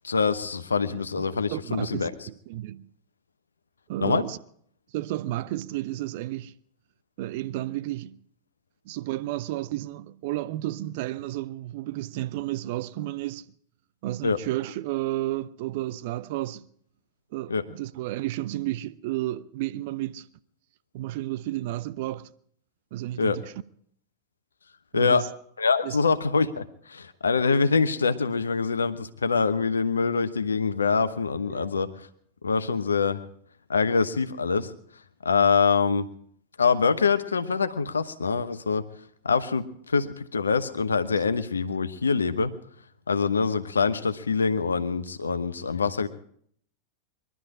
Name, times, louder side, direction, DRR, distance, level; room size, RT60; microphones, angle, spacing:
voice 1, 0.0-2.1 4.0-4.2 14.2-14.4 17.5-17.6 23.2-23.4 24.9-25.2 25.6-31.9 32.4-33.2 33.7-34.7 35.2-36.1 36.6-38.8 39.2-42.5 43.1-46.1, left 5 dB, 75° left, 1.0 m, -24 dB
voice 2, 1.3-2.9 3.9-4.4 4.9-6.5 7.2-8.2 8.8-13.5 14.0-16.6 17.3-20.3 20.9-22.3 22.9-23.5 24.9-25.3 25.8-26.0 31.5-31.7, right 15 dB, 50° right, 0.6 m, -32 dB
22.0 x 12.5 x 4.9 m
figure-of-eight pair, 90°, 0 cm